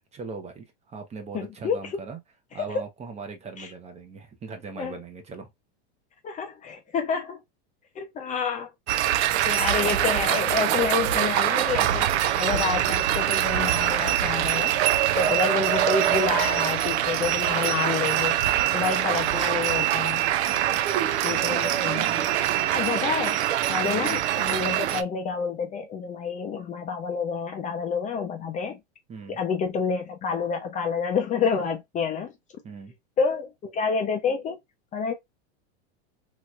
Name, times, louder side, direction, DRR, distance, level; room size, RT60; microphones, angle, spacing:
voice 1, 0.1-2.2 2.5-5.5 18.6-19.0 20.5-20.8 23.8-24.0 29.1-29.4 32.6-32.9, right 4 dB, 20° right, 0.7 m, -40 dB
voice 2, 1.3-1.8 3.6-3.7 4.8-5.0 6.2-7.4 8.0-8.7 9.5-14.7 15.2-18.4 18.7-20.3 21.2-22.3 22.7-23.4 23.7-28.8 29.3-32.3 33.2-34.6 34.9-35.1, left 5 dB, 25° left, 0.5 m, -28 dB
sound 1, 8.9-25.0, right 12 dB, 80° right, 0.6 m, -24 dB
3.1 x 3.0 x 2.3 m
supercardioid pair, 125°, 33 cm